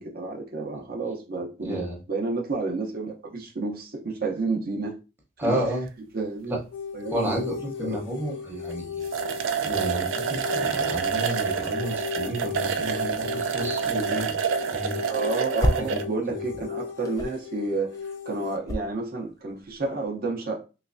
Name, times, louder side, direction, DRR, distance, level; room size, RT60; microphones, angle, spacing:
voice 1, 0.0-5.0 5.4-5.6 6.1-6.6 6.9-7.4 7.8-8.0 15.1-20.6, right 3 dB, 50° right, 0.6 m, -30 dB
voice 2, 1.6-2.0 5.4-5.9 6.5-6.6 7.1-9.1 9.6-14.4 14.7-15.0 15.8-16.0 16.3-16.4, right 1 dB, 10° right, 0.8 m, -31 dB
sound 1, 6.7-18.6, left 6 dB, 75° left, 0.5 m, -36 dB
sound 2, 8.7-8.8 9.0-16.1, right 7 dB, 90° right, 0.4 m, -28 dB
sound 3, 14.4-16.1 16.3-20.1, left 1 dB, 20° left, 0.3 m, -31 dB
3.1 x 3.1 x 2.5 m
head